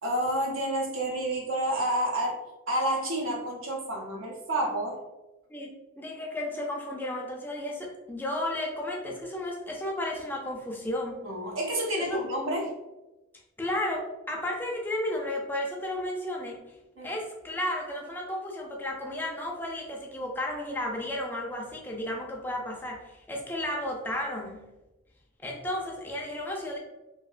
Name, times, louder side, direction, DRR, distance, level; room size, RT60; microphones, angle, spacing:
voice 1, 0.0-2.4 2.7-5.0 11.2-12.7 17.0-17.1, right 1 dB, 80° right, -1 dB, 0.8 m, -29 dB
voice 2, 5.5-11.2 12.0-12.2 13.6-16.7 17.0-24.7 25.4-26.8, left 1 dB, 10° left, -1 dB, 0.3 m, -33 dB
2.8 x 2.7 x 2.4 m, 1.0 s
head